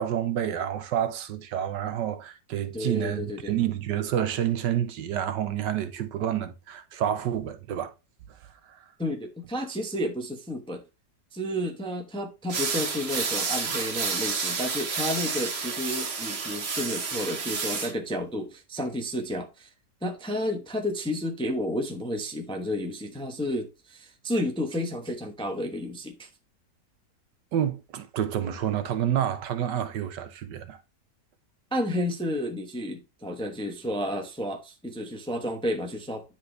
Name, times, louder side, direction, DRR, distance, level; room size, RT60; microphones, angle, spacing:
voice 1, 0.0-7.9 8.7-8.8 27.5-30.8, right 10 dB, 75° right, 1.4 m, -29 dB
voice 2, 2.7-3.5 9.0-10.8 11.3-19.7 20.0-26.3 31.7-36.2, left 1 dB, 5° left, 0.7 m, -31 dB
sound 1, 12.5-17.9, right 5 dB, 40° right, 1.2 m, -30 dB
9.9 x 4.0 x 3.2 m
omnidirectional pair, 1.9 m